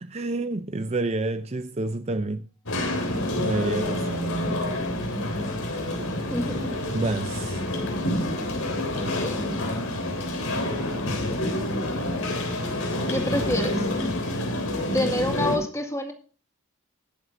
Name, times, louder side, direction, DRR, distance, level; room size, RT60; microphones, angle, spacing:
voice 1, 0.0-2.5 3.4-4.1 6.9-7.6, right 2 dB, 30° right, 0.5 m, -28 dB
sound 1, 2.7-15.6, left 1 dB, 85° left, 3.6 m, -28 dB
voice 2, 6.3-6.8 8.9-9.4 13.1-13.9 14.9-16.1, left 1 dB, 15° left, 1.8 m, -28 dB
20.0 x 7.8 x 2.6 m
head